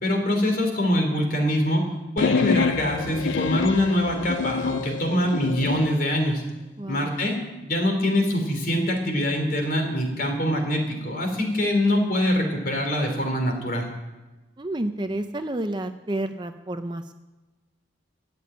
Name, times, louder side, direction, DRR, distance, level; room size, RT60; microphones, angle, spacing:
voice 1, 0.0-1.8 2.1-6.4 6.9-7.4 7.6-13.9, left 1 dB, 45° left, 3 dB, 3.3 m, -24 dB
sound 1, 2.2-5.9, left 6 dB, 80° left, 0.4 m, -27 dB
voice 2, 6.8-7.1 14.6-17.1, right 1 dB, 25° right, 8 dB, 0.6 m, -30 dB
14.0 x 8.6 x 9.0 m, 1.1 s
head